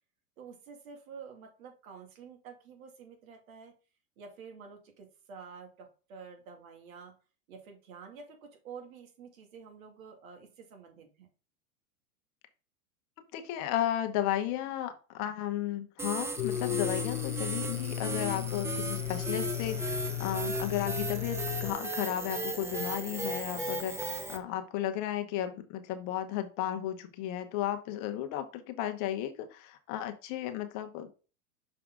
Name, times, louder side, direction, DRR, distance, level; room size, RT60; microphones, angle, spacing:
voice 1, 0.4-3.7 4.2-7.1 7.5-11.3, right 6 dB, 65° right, 4 dB, 2.4 m, -49 dB
voice 2, 13.3-31.1, left 12 dB, 40° left, 7 dB, 1.0 m, -34 dB
sound 1, 16.0-24.4, right 2 dB, 5° right, 0.5 m, -36 dB
Domestic sounds home sounds, 16.4-21.7, left 14 dB, 70° left, 1.0 m, -35 dB
6.2 x 4.8 x 3.6 m, 0.35 s
hypercardioid pair, 115°, 44 cm